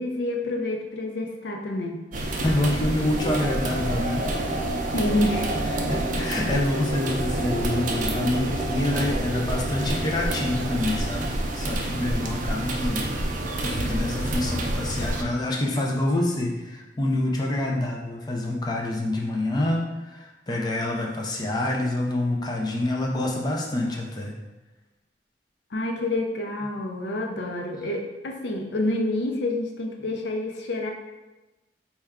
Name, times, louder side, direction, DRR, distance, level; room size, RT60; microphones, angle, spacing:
voice 1, 0.0-2.0 4.9-5.5 25.7-30.9, left 1 dB, 75° left, 2 dB, 0.5 m, -28 dB
sound 1, 2.1-15.2, right 1 dB, 50° right, 0.5 m, -28 dB
voice 2, 2.4-4.3 5.9-11.3 11.5-13.1 13.6-24.3, left 1 dB, 25° left, -1 dB, 0.4 m, -27 dB
4.2 x 2.3 x 3.5 m, 1.1 s
head